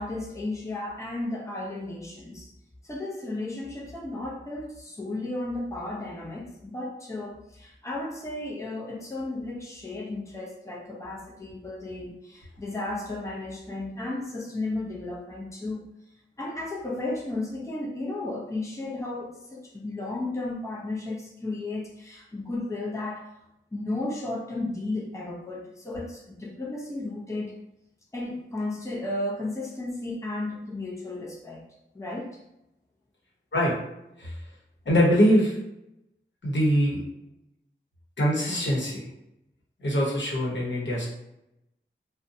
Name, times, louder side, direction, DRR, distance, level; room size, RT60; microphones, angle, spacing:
voice 1, 0.0-2.5 2.8-15.8 16.4-23.3 23.7-27.5 28.1-31.6 31.9-32.4, left 2 dB, 15° left, -3 dB, 0.6 m, -34 dB
voice 2, 34.8-35.6 36.4-37.0 38.2-39.1 39.8-41.1, equal, 65° left, -4 dB, 1.0 m, -23 dB
2.5 x 2.2 x 2.6 m, 0.86 s
wide cardioid pair, 50°, 20 cm